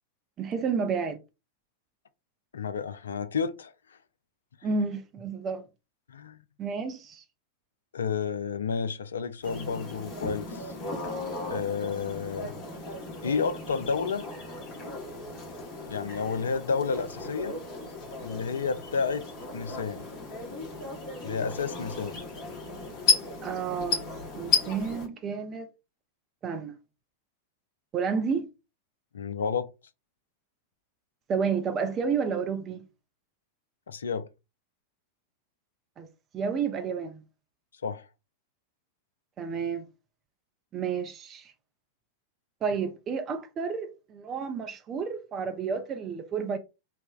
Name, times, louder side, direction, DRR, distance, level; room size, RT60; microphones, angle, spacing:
voice 1, 0.4-1.2 4.6-5.6 6.6-7.2 23.4-24.1 24.4-25.7 26.4-26.8 27.9-28.5 31.3-32.8 36.0-36.1 36.3-37.2 39.4-39.9 40.7-41.5 42.6-46.6, right 5 dB, 30° right, 0.4 m, -30 dB
voice 2, 2.5-3.7 6.1-6.4 7.9-10.8 11.5-12.6 13.2-14.3 15.9-17.6 18.2-19.3 19.5-20.0 21.2-22.2 29.1-29.7 33.9-34.3 37.8-38.1, left 5 dB, 70° left, 0.3 m, -31 dB
sound 1, 9.4-25.1, left 4 dB, 40° left, 0.9 m, -34 dB
3.2 x 2.0 x 2.3 m
figure-of-eight pair, 90°, 0 cm